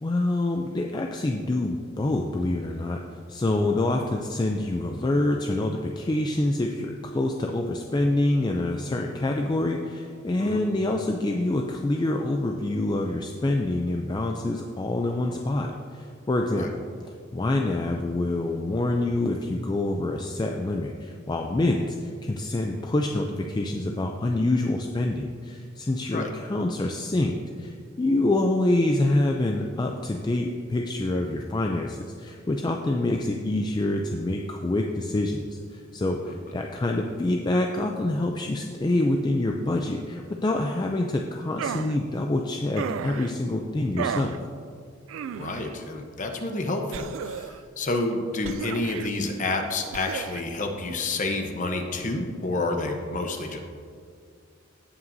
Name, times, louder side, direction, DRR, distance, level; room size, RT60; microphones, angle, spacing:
voice 1, 0.0-3.0 3.3-16.8 17.3-44.4, left 2 dB, 20° left, 2 dB, 0.3 m, -26 dB
sound 1, 41.6-42.0 42.8-43.3 44.0-44.4 45.1-45.7 46.9-47.6 48.4-49.1 49.9-50.4, right 7 dB, 75° right, 0.3 m, -33 dB
voice 2, 45.4-53.6, left 2 dB, 40° left, 4 dB, 0.8 m, -29 dB
16.5 x 5.8 x 2.7 m, 2.2 s
head